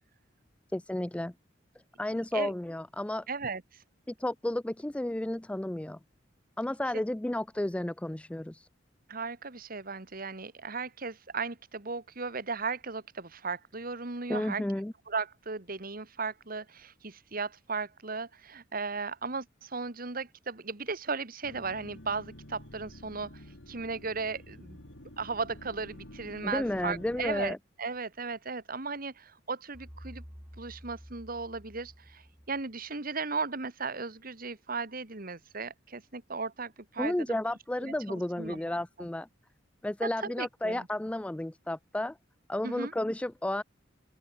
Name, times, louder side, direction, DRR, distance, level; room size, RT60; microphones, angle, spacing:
voice 1, 0.7-1.3 2.0-3.3 4.1-6.0 6.6-8.7 14.3-14.9 26.4-27.6 37.0-39.3 39.8-42.2 42.5-43.6, left 1 dB, 5° left, 0.3 m, -32 dB
voice 2, 2.1-2.5 3.3-3.6 9.1-14.6 15.1-23.4 23.7-24.8 25.2-30.2 30.6-37.1 37.8-38.6 40.0-40.9 42.6-42.9, right 4 dB, 50° right, 1.9 m, -36 dB
sound 1, 21.4-27.5, left 1 dB, 85° left, 4.5 m, -49 dB
sound 2, 29.7-32.9, equal, 10° right, 5.3 m, -50 dB
open air
head